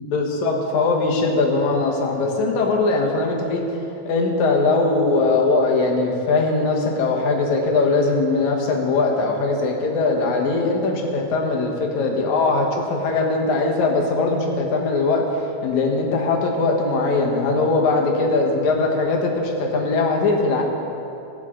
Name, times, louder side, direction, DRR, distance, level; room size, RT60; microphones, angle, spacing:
voice 1, 0.0-3.7 4.1-20.6, left 3 dB, 80° left, 1 dB, 2.6 m, -20 dB
16.0 x 9.0 x 3.8 m, 2.9 s
omnidirectional pair, 3.3 m